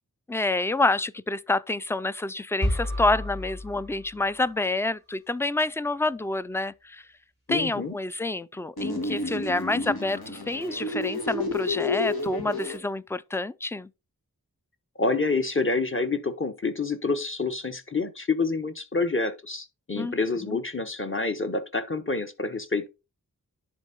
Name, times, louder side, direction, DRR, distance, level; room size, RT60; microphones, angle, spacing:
voice 1, 0.3-7.1 7.5-13.9 19.9-20.2 20.4-20.6, left 2 dB, 5° left, 0.4 m, -28 dB
sound 1, 2.6-4.6, left 1 dB, 60° left, 5.5 m, -31 dB
voice 2, 7.5-8.0 15.0-22.9, left 3 dB, 35° left, 1.1 m, -28 dB
sound 2, 8.8-12.8, left 3 dB, 80° left, 2.2 m, -30 dB
10.5 x 3.8 x 4.2 m
wide cardioid pair, 55°, 36 cm